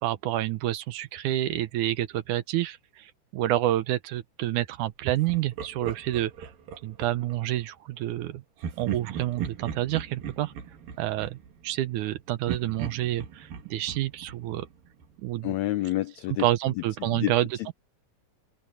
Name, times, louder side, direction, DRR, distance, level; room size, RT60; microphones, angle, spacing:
voice 1, 0.0-6.5 6.8-8.4 8.8-10.5 11.0-11.4 11.6-14.7 15.2-15.5 16.4-17.5, right 14 dB, 75° right, 2.1 m, -28 dB
Laughter, 5.3-7.4 8.6-12.1 12.5-15.2, right 8 dB, 90° right, 4.2 m, -38 dB
voice 2, 15.4-16.5 17.0-17.7, left 16 dB, 85° left, 1.6 m, -29 dB
open air
omnidirectional pair, 3.9 m